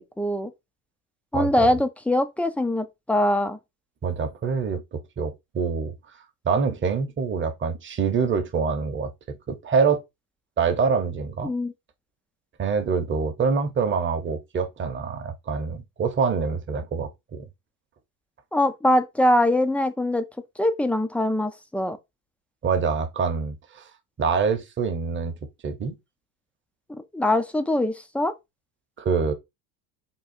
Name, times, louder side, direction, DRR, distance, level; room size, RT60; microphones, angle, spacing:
voice 1, 0.2-0.5 1.3-3.6 11.4-11.7 18.5-20.2 20.6-22.0 26.9-28.3, left 1 dB, 5° left, 0.4 m, -23 dB
voice 2, 1.3-1.7 4.0-5.9 6.4-9.1 9.5-10.0 10.6-11.5 12.6-17.5 22.6-23.9 24.2-25.3 25.6-26.0 29.0-29.3, right 5 dB, 25° right, 0.9 m, -25 dB
3.8 x 2.3 x 4.3 m
hypercardioid pair, 90°, 46 cm